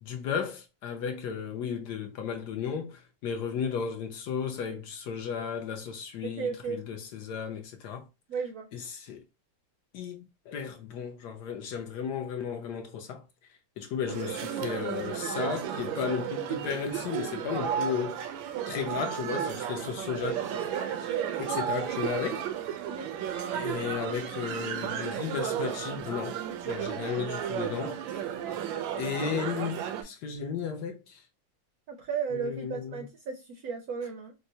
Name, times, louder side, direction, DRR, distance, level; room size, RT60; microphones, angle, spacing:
voice 1, 0.0-8.0 8.7-9.2 9.9-13.2 13.8-18.2 18.7-20.5 21.4-22.4 23.5-28.3 29.0-31.2 32.3-33.0, left 7 dB, 70° left, 1.0 m, -34 dB
voice 2, 6.2-6.8 8.3-8.7 22.8-23.1 31.9-34.3, right 6 dB, 70° right, 0.9 m, -34 dB
sound 1, 14.1-30.0, right 9 dB, 85° right, 1.3 m, -33 dB
4.4 x 2.1 x 2.7 m
omnidirectional pair, 2.1 m